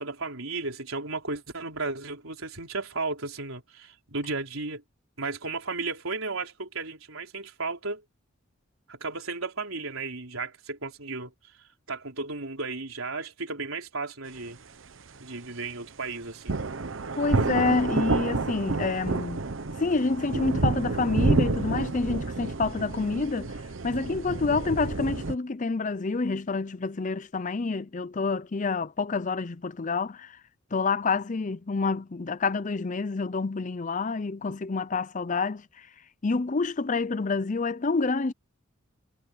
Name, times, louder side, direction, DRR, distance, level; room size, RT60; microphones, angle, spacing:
voice 1, 0.0-4.8 5.2-8.0 8.9-11.3 11.9-14.6 15.2-16.5, right 3 dB, 80° right, 4.1 m, -34 dB
sound 1, 16.5-25.4, right 3 dB, 65° right, 0.9 m, -29 dB
voice 2, 17.2-19.5 19.8-23.5 23.8-30.4 30.7-35.9 36.2-38.3, left 4 dB, 35° left, 0.6 m, -28 dB
head